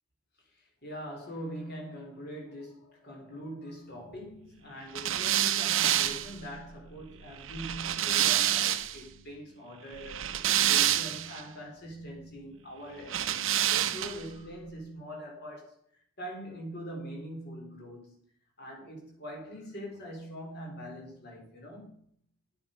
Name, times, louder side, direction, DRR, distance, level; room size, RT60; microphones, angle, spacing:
voice 1, 0.4-18.2 18.6-21.9, equal, 50° left, 4.0 m, -43 dB
sound 1, 4.9-9.0 10.0-11.4 13.1-14.3, right 12 dB, 60° right, 0.7 m, -28 dB
10.5 x 8.7 x 5.3 m
head